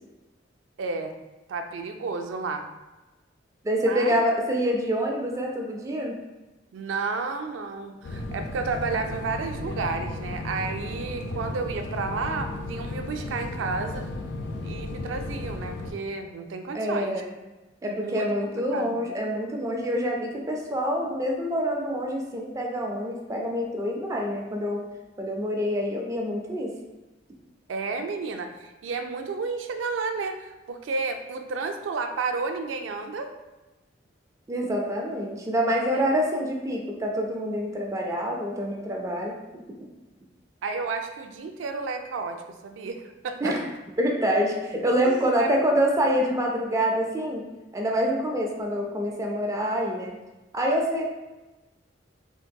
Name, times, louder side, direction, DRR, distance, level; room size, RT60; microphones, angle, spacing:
voice 1, 0.8-1.1 1.5-2.7 3.8-4.1 6.7-14.0 14.6-17.2 17.8-18.3 18.7-19.0 27.7-33.3 35.9-36.0 40.6-43.6 45.0-45.5, right 4 dB, 90° right, 5 dB, 0.4 m, -31 dB
voice 2, 3.6-6.1 16.7-17.3 17.8-24.8 25.2-26.7 34.5-39.4 43.4-43.6 44.0-47.5 47.7-50.1 50.5-51.0, equal, 15° right, 0 dB, 0.3 m, -26 dB
sound 1, 8.0-15.9, left 2 dB, 65° left, 0.4 m, -34 dB
3.6 x 2.6 x 2.2 m, 1.1 s
head